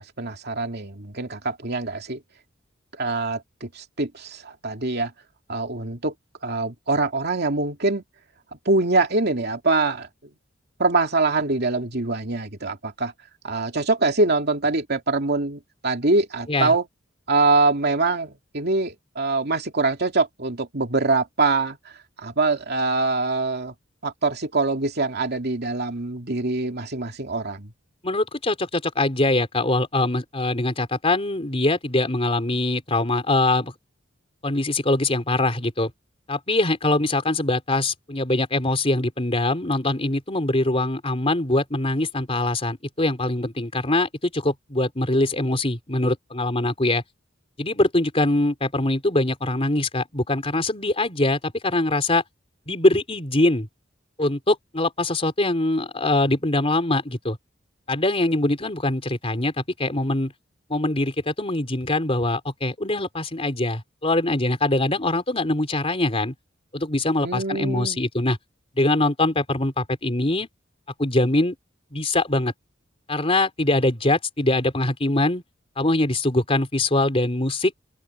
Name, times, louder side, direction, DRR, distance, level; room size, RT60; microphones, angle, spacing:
voice 1, 0.2-2.2 3.0-5.1 5.5-6.1 6.4-8.0 8.7-10.1 10.8-13.1 13.4-16.8 17.3-21.8 22.2-23.7 24.0-27.7 67.2-68.0, right 3 dB, 55° right, 2.7 m, -24 dB
voice 2, 28.0-33.7 34.4-35.9 36.3-47.0 47.6-52.2 52.7-53.7 54.2-57.4 57.9-60.3 60.7-66.3 66.7-68.4 68.8-70.5 71.0-71.6 71.9-72.5 73.1-75.4 75.8-77.7, left 2 dB, 30° left, 4.0 m, -23 dB
open air
head